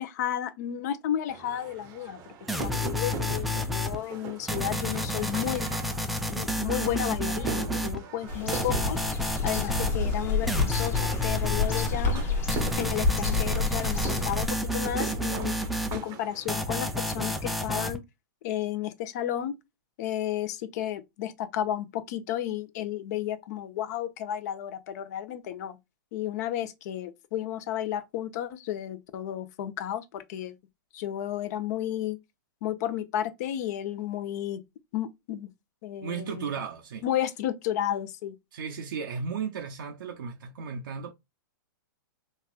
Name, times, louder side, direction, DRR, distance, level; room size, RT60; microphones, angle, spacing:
voice 1, 0.0-2.2 2.5-5.7 6.3-9.0 9.4-12.2 12.8-15.5 15.9-18.0 18.4-19.5 20.0-25.8 26.1-30.5 30.9-32.2 32.6-34.6 34.9-35.5 35.8-36.5 37.0-38.3, left 11 dB, 50° left, 0.6 m, -32 dB
sound 1, 1.3-17.8, right 5 dB, 30° right, 0.7 m, -41 dB
sound 2, 2.5-4.0 4.5-8.0 8.5-10.0 10.5-12.0 12.5-16.0 16.5-18.0, left 1 dB, ahead, 0.3 m, -30 dB
sound 3, 8.3-14.5, left 4 dB, 20° left, 0.8 m, -29 dB
voice 2, 36.0-37.0 38.5-41.1, right 6 dB, 70° right, 0.6 m, -35 dB
4.1 x 2.4 x 2.3 m
hypercardioid pair, 130°, 11 cm